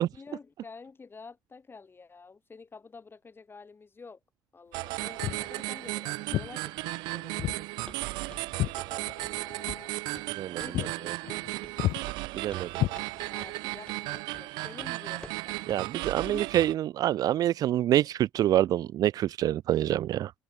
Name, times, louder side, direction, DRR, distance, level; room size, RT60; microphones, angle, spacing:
voice 1, 0.1-4.2 4.5-7.7 8.9-9.9 10.6-11.4 13.3-15.8 16.2-16.5, left 4 dB, 30° left, 7.4 m, -48 dB
sound 1, 4.7-16.7, right 22 dB, 80° right, 1.4 m, -35 dB
Walk footsteps, 5.2-5.5 6.3-6.5 7.4-7.6 7.9-9.4 9.7-9.9 10.3-10.4 10.7-11.0 11.3-11.5 11.8-12.0 12.8-13.5, left 15 dB, 65° left, 0.5 m, -31 dB
Walk footsteps 2, 7.9-8.0 8.3-8.5 8.8-9.0 9.2-9.9 10.1-10.3 10.6-10.9 11.6-11.8 12.1-12.7 13.0-13.1 13.4-13.5 13.9-14.0 14.3-14.5 14.8-14.9 15.2-15.4 15.7-15.8 16.2-16.4, left 2 dB, 15° left, 4.3 m, -50 dB
voice 2, 12.3-12.7 15.7-20.3, right 12 dB, 60° right, 0.4 m, -26 dB
hypercardioid pair, 65°, 7 cm